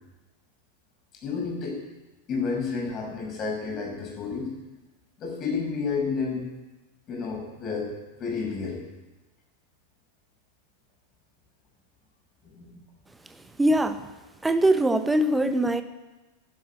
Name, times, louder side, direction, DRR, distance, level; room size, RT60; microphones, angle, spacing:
voice 1, 1.2-1.8 2.3-4.6 5.2-6.4 7.1-7.9 8.2-8.8 12.4-12.8, left 5 dB, 30° left, 0 dB, 6.0 m, -30 dB
voice 2, 13.6-14.0 14.4-15.8, right 1 dB, 10° right, 10 dB, 1.2 m, -22 dB
12.0 x 11.5 x 9.6 m, 1.1 s
figure-of-eight pair, 90°, 0 cm